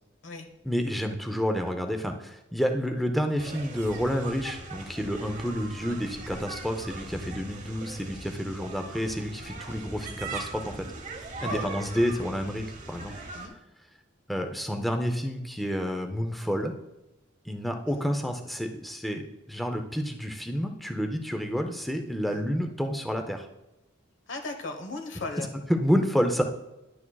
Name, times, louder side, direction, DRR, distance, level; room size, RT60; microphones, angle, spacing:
voice 1, 0.6-10.9 11.4-13.1 14.3-16.7 17.4-19.2 19.5-23.5 25.4-26.4, equal, ahead, 4 dB, 0.5 m, -29 dB
sound 1, 3.4-13.5, right 3 dB, 40° right, 1.0 m, -40 dB
voice 2, 24.3-25.5, left 3 dB, 70° left, 5 dB, 1.1 m, -37 dB
11.0 x 8.4 x 2.3 m, 0.97 s
head